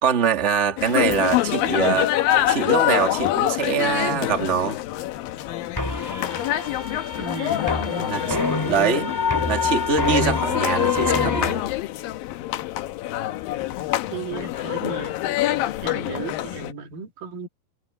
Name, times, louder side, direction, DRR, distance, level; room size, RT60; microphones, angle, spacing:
voice 1, 0.0-2.1 2.5-4.8 7.9-8.4 8.7-9.1 9.5-11.7, right 6 dB, 25° right, 2.0 m, -23 dB
sound 1, 0.8-16.7, left 14 dB, 75° left, 2.6 m, -25 dB
sound 2, 5.8-11.5, left 3 dB, 5° left, 2.5 m, -27 dB
voice 2, 7.2-9.1 14.1-15.1 15.8-17.5, right 5 dB, 65° right, 4.2 m, -35 dB
omnidirectional pair, 4.4 m